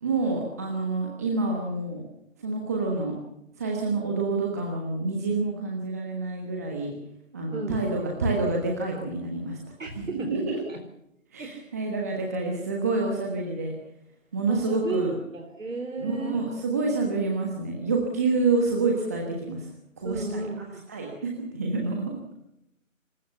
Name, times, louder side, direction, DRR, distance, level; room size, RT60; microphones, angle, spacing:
voice 1, 0.0-2.1 2.4-3.1 3.6-6.9 7.3-9.6 10.0-10.6 11.3-13.7 14.3-15.1 16.0-19.7 20.0-20.4 20.9-22.1, right 3 dB, 10° right, 0 dB, 1.3 m, -28 dB
voice 2, 7.5-8.0 9.8-10.8 11.4-11.6 14.5-16.4 20.0-20.8, right 3 dB, 65° right, 3 dB, 3.8 m, -34 dB
26.0 x 15.5 x 6.9 m, 0.81 s
figure-of-eight pair, 165°, 41 cm